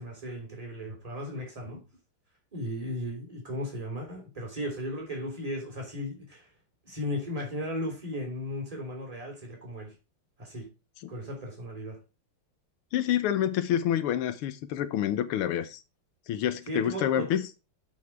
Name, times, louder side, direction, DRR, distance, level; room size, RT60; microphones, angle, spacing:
voice 1, 0.0-1.8 2.5-6.5 6.8-10.0 10.4-10.7 11.1-12.0 16.7-17.4, equal, 15° right, 3.3 m, -36 dB
voice 2, 12.9-15.8 16.3-17.4, left 10 dB, 85° left, 1.7 m, -28 dB
7.5 x 6.0 x 4.7 m
omnidirectional pair, 2.4 m